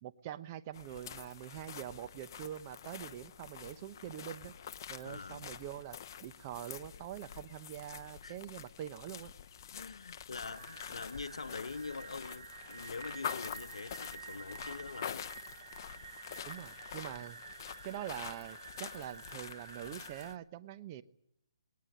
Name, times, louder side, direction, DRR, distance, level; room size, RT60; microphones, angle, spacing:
voice 1, 0.0-4.5 4.9-9.3 16.5-17.4 17.8-21.0, right 11 dB, 30° right, 1.0 m, -44 dB
sound 1, 0.7-20.3, left 8 dB, 40° left, 1.0 m, -47 dB
voice 2, 5.0-5.5 8.2-8.4 9.7-15.3, left 4 dB, 85° left, 1.0 m, -44 dB
sound 2, 10.5-20.4, right 6 dB, 70° right, 1.5 m, -50 dB
20.0 x 19.0 x 9.5 m
hypercardioid pair, 155°, 3 cm